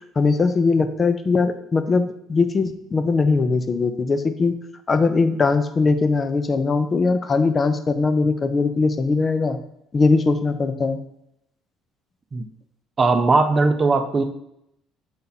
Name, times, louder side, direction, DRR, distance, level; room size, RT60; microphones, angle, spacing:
voice 1, 0.2-4.6 4.9-9.6 9.9-11.0, left 4 dB, 30° left, 9 dB, 0.7 m, -20 dB
voice 2, 13.0-14.2, right 3 dB, 30° right, 7 dB, 0.6 m, -18 dB
7.1 x 4.1 x 4.0 m, 0.78 s
cardioid pair, 100°, 0 cm